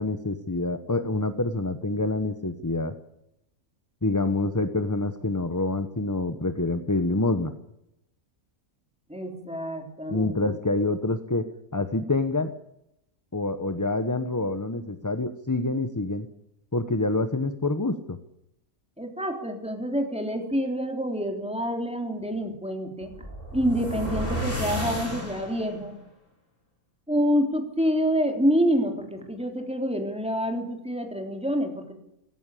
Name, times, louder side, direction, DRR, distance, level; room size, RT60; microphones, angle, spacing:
voice 1, 0.0-2.9 4.0-7.5 10.1-11.4 11.7-12.5 13.3-16.3 16.7-18.2, left 2 dB, 15° left, 9 dB, 0.9 m, -26 dB
voice 2, 9.1-10.4 19.0-23.1 23.5-25.9 27.1-31.9, equal, 5° right, 3 dB, 3.5 m, -27 dB
sound 1, 23.0-25.8, left 1 dB, 35° left, 6.2 m, -32 dB
18.5 x 16.5 x 8.5 m, 0.81 s
omnidirectional pair, 1.5 m